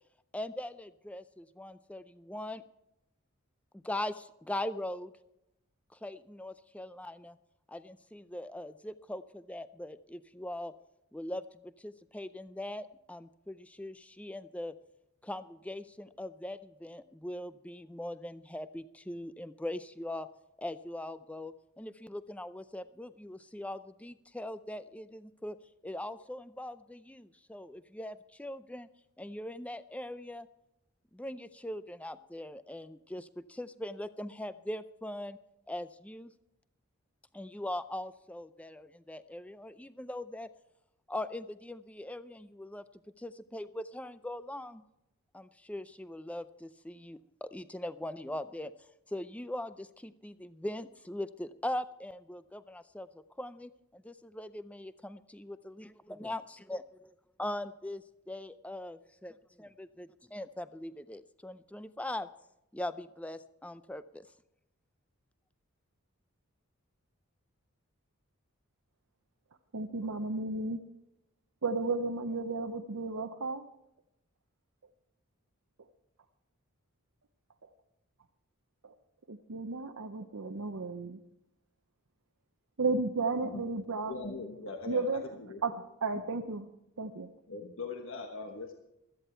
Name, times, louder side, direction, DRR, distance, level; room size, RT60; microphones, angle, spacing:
voice 1, 0.3-2.6 3.7-5.1 5.9-7.4 7.7-10.7 11.1-14.8 15.2-20.3 20.6-25.6 25.8-28.9 29.2-30.5 31.1-35.4 35.7-36.3 37.3-40.5 41.1-42.8 43.2-44.8 45.3-48.7 49.1-57.1 57.4-62.3 62.7-64.3, left 1 dB, 5° left, 13 dB, 0.4 m, -41 dB
voice 2, 69.7-70.8 71.6-73.6 78.8-78.9 79.3-81.2 82.8-84.1 84.9-85.3 85.6-86.7 87.0-87.3, right 3 dB, 75° right, 4 dB, 0.8 m, -33 dB
voice 3, 84.1-85.6 87.5-88.7, left 3 dB, 65° left, 3 dB, 1.2 m, -41 dB
16.0 x 13.5 x 4.4 m, 0.86 s
head